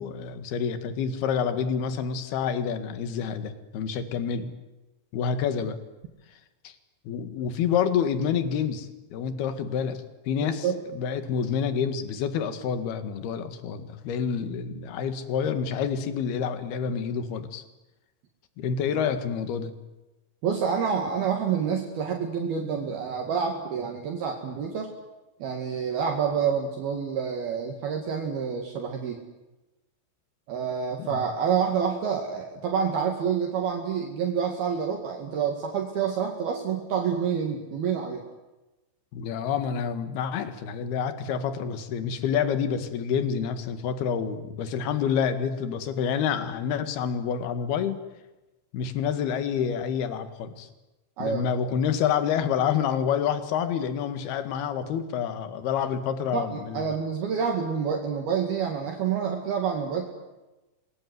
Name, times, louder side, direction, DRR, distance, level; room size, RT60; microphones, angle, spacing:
voice 1, 0.0-4.5 5.1-5.8 6.6-6.7 7.1-17.6 18.6-19.8 31.0-31.2 39.1-48.0 48.7-50.7 51.2-56.9, left 7 dB, 60° left, 10 dB, 3.6 m, -28 dB
voice 2, 10.4-10.8 20.4-24.9 25.4-29.2 30.5-38.2 51.2-51.4 56.3-60.1, right 7 dB, 60° right, 2 dB, 3.8 m, -28 dB
26.5 x 21.5 x 9.6 m, 1.1 s
omnidirectional pair, 5.3 m